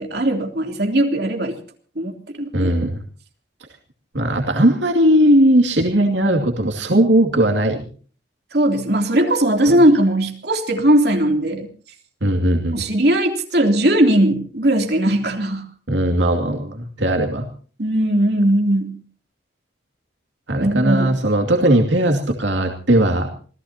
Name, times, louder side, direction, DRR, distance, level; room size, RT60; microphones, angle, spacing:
voice 1, 0.0-1.6 2.0-2.7 8.5-11.7 12.7-15.7 17.8-19.0 20.6-21.2, right 1 dB, 60° right, 3 dB, 3.3 m, -18 dB
voice 2, 2.5-3.0 4.1-7.8 12.2-12.8 15.9-17.5 20.5-23.3, right 1 dB, 80° right, 3 dB, 2.5 m, -18 dB
27.5 x 17.5 x 2.9 m, 0.42 s
head